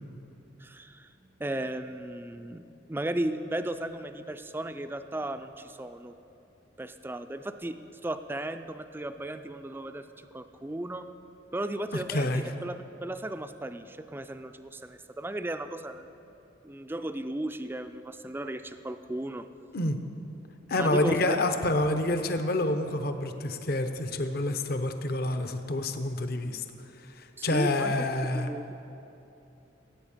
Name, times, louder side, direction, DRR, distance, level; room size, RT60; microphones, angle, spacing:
voice 1, 0.6-6.1 6.8-7.7 8.0-10.1 10.3-11.1 11.5-16.1 16.6-19.5 20.8-21.4 27.4-27.9 28.3-28.7, right 1 dB, 10° right, 9 dB, 0.4 m, -35 dB
voice 2, 12.1-12.4 19.7-20.0 20.7-26.6 27.2-28.5, left 2 dB, 50° left, 7 dB, 0.8 m, -28 dB
15.5 x 8.5 x 7.3 m, 2.9 s
head